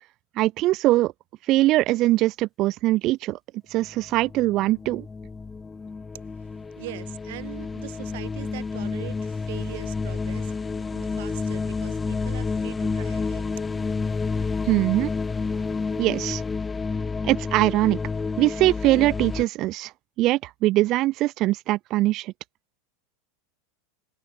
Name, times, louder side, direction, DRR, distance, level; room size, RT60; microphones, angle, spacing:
voice 1, 0.4-1.1 1.5-3.4 3.7-5.1 14.7-15.1 16.0-16.4 17.2-18.0 18.4-19.9 20.2-22.3, right 17 dB, 35° right, 0.5 m, -22 dB
sound 1, 3.8-19.4, left 4 dB, 10° left, 2.4 m, -30 dB
voice 2, 6.8-13.5, right 19 dB, 65° right, 5.1 m, -41 dB
supercardioid pair, 160°, 0 cm